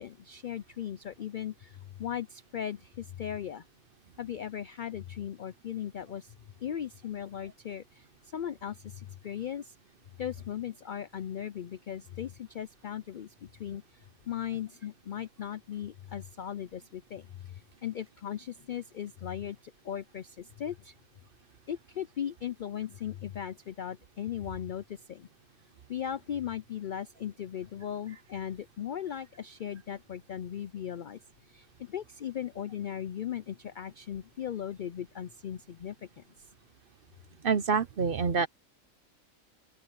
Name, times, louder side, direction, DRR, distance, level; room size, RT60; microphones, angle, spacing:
voice 1, 0.0-3.6 4.2-6.3 6.6-9.7 10.2-13.8 14.3-17.3 17.8-20.9 21.7-25.3 25.9-31.2 31.5-36.2, left 9 dB, 70° left, 0.4 m, -38 dB
voice 2, 37.4-38.5, right 5 dB, 50° right, 0.8 m, -26 dB
open air
omnidirectional pair, 1.4 m